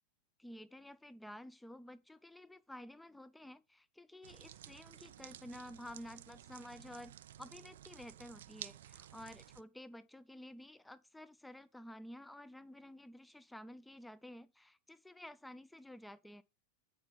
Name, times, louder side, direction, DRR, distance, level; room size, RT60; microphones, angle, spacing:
voice 1, 0.4-16.4, left 1 dB, 5° left, 0.4 m, -52 dB
sound 1, 4.2-9.6, right 11 dB, 60° right, 0.4 m, -53 dB
8.8 x 5.1 x 4.6 m
figure-of-eight pair, 90°, 0 cm